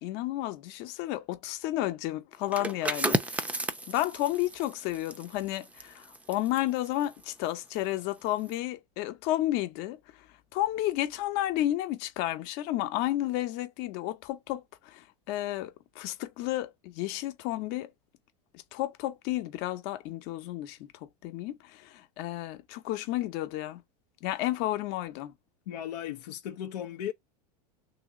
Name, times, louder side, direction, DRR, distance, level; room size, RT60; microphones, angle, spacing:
voice 1, 0.0-3.5 3.9-10.0 10.5-17.9 18.7-20.8 21.2-23.8 24.2-25.3, left 15 dB, 55° left, 0.9 m, -32 dB
sound 1, 2.4-7.9 8.3-8.5, right 2 dB, 5° right, 0.5 m, -34 dB
voice 2, 25.7-27.1, left 10 dB, 80° left, 0.7 m, -36 dB
3.1 x 3.0 x 3.7 m
hypercardioid pair, 115°, 20 cm